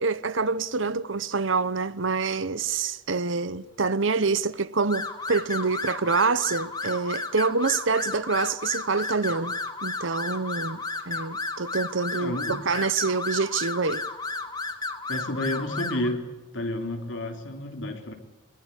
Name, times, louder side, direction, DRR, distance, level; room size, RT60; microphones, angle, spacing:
voice 1, 0.0-14.0, right 4 dB, 75° right, 0.9 m, -26 dB
sound 1, 4.9-16.1, left 3 dB, 20° left, 2.0 m, -33 dB
voice 2, 12.1-12.6 15.1-16.2 16.5-18.1, left 1 dB, 70° left, 3.6 m, -30 dB
22.5 x 22.5 x 8.3 m
head